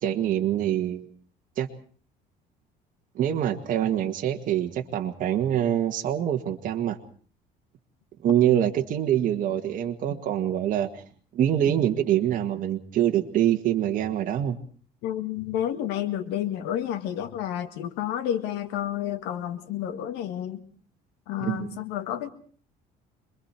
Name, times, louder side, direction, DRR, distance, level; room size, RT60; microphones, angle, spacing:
voice 1, 0.0-1.1 1.6-1.7 3.1-7.0 8.2-11.0 11.3-14.6 21.4-21.7, right 11 dB, 55° right, 4 dB, 1.8 m, -25 dB
voice 2, 15.0-20.6 21.3-22.3, left 11 dB, 90° left, 9 dB, 1.9 m, -30 dB
27.0 x 22.0 x 4.4 m, 0.44 s
cardioid pair, 130°, 17 cm